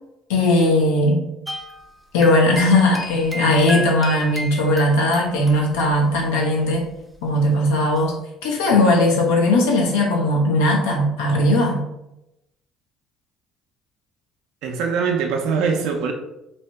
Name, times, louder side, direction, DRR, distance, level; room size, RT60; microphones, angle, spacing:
voice 1, 0.3-1.2 2.1-6.8 7.2-8.1 8.4-11.8, left 1 dB, 80° left, 0.6 m, -18 dB
sound 1, 1.5-6.5 6.7-6.9 8.0-8.1, equal, ahead, 0.5 m, -33 dB
voice 2, 14.6-16.1, right 5 dB, 70° right, 0.4 m, -22 dB
2.7 x 2.0 x 3.3 m
hypercardioid pair, 60°, 0 cm